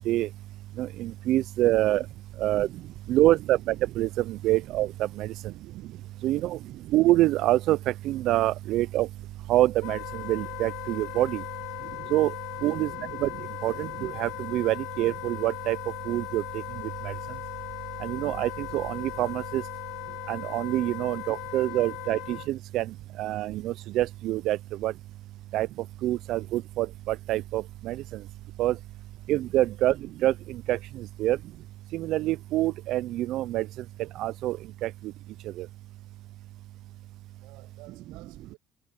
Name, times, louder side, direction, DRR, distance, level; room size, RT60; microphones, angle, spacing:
voice 1, 0.8-2.0 2.4-2.7 3.1-4.9 5.2-5.3 6.2-6.6 6.9-7.8 8.0-9.1 9.5-10.0 10.3-11.4 12.1-12.3 12.6-12.9 13.2-13.3 13.6-15.8 16.1-16.4 18.0-19.6 20.3-22.8 23.2-24.6 24.8-24.9 25.5-25.7 26.0-28.0 28.6-28.7 29.3-29.9 30.2-30.3 30.7-30.8 31.2-31.4 31.9-33.6 34.2-34.6 34.8-34.9 35.6-35.7, right 15 dB, 65° right, 0.5 m, -25 dB
Wind instrument woodwind instrument, 9.8-22.5, left 20 dB, 85° left, 1.9 m, -38 dB
voice 2, 37.4-38.6, right 25 dB, 80° right, 7.9 m, -55 dB
cardioid pair, 110°, 0 cm